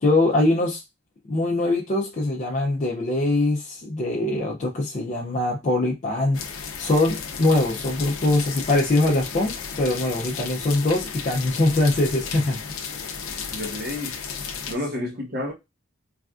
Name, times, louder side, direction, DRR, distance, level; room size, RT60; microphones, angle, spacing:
voice 1, 0.0-0.8 1.3-12.6, left 2 dB, 35° left, 0.4 m, -22 dB
sound 1, 6.3-14.7, left 6 dB, 90° left, 0.5 m, -34 dB
voice 2, 13.5-14.2 14.7-15.5, left 1 dB, 45° right, 0.9 m, -30 dB
3.2 x 2.4 x 2.3 m
head